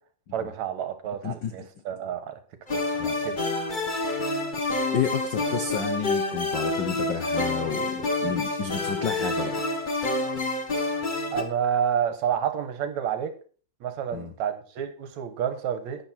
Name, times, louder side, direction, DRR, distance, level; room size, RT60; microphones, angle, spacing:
voice 1, 0.3-2.4 2.9-3.4 11.3-13.3 13.8-16.0, right 8 dB, 70° right, 9 dB, 2.5 m, -29 dB
voice 2, 1.2-1.7 3.0-3.2 4.9-9.6 14.1-14.3, left 7 dB, 80° left, 7 dB, 1.0 m, -31 dB
sound 1, 2.7-11.4, left 2 dB, 40° left, 0.6 m, -28 dB
12.0 x 8.9 x 4.4 m, 0.40 s
omnidirectional pair, 3.4 m